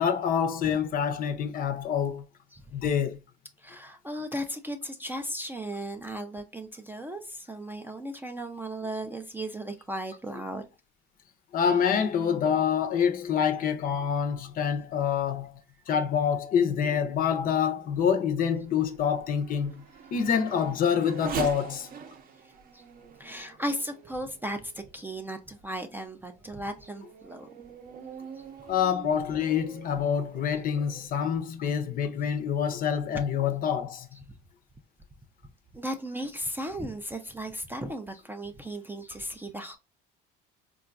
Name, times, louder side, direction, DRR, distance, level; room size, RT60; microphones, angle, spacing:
voice 1, 0.0-2.2 2.7-3.2 11.5-15.5 15.9-19.8 20.1-21.9 28.7-34.1, left 7 dB, 45° left, 0.5 m, -26 dB
voice 2, 3.6-10.7 22.4-22.8 23.2-27.5 35.7-39.8, right 1 dB, 10° right, 0.3 m, -36 dB
Race car auto racing / Accelerating revving vroom, 17.2-25.0 25.6-25.7 26.3-31.1, right 7 dB, 45° right, 0.6 m, -43 dB
3.7 x 2.3 x 2.3 m
supercardioid pair, 100°, 21 cm